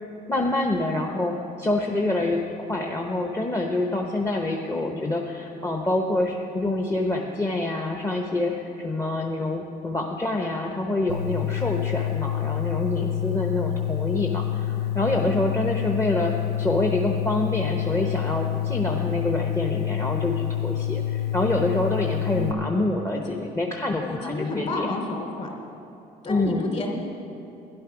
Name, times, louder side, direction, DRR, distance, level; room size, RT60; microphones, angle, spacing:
voice 1, 0.3-24.9 26.3-26.7, left 2 dB, 15° left, 2 dB, 0.9 m, -26 dB
sound 1, 11.1-22.5, left 12 dB, 80° left, 0.8 m, -27 dB
voice 2, 22.3-22.8 24.0-25.5 26.2-26.9, left 2 dB, 40° left, 0 dB, 3.1 m, -30 dB
12.0 x 10.5 x 6.0 m, 3.0 s
cardioid pair, 110°, 17 cm